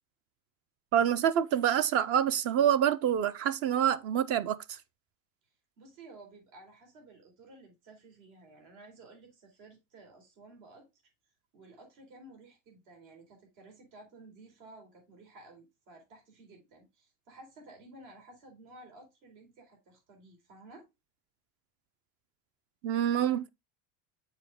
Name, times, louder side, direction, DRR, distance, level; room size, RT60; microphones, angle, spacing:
voice 1, 0.9-4.6 22.8-23.5, right 9 dB, 35° right, 0.4 m, -26 dB
voice 2, 5.8-10.9 11.5-20.9, right 2 dB, 70° right, 4.3 m, -54 dB
7.2 x 4.8 x 3.6 m
cardioid pair, 145°, 44 cm